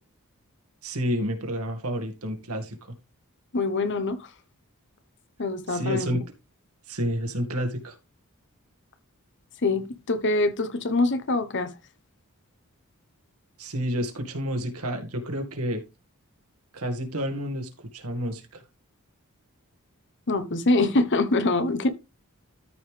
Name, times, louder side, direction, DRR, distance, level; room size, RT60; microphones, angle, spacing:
voice 1, 0.8-2.8 5.7-6.2 6.9-7.9 13.6-15.8 16.7-18.6, equal, 75° right, 1.9 m, -30 dB
voice 2, 3.5-4.3 5.4-6.2 9.6-11.7 20.3-21.9, left 2 dB, 55° left, 1.0 m, -24 dB
13.0 x 5.4 x 3.3 m
head